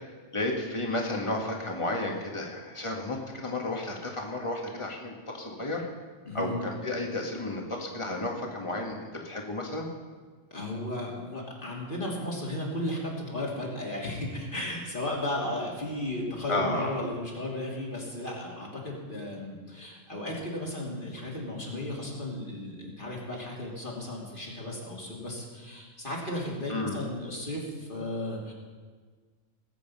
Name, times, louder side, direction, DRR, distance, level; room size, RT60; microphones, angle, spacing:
voice 1, 0.3-5.9 6.3-9.9 16.5-17.0 26.7-27.0, left 2 dB, 25° left, 0 dB, 1.9 m, -32 dB
voice 2, 6.2-6.6 10.5-28.5, left 1 dB, 40° left, -3 dB, 3.1 m, -35 dB
19.5 x 8.4 x 5.6 m, 1.5 s
omnidirectional pair, 1.3 m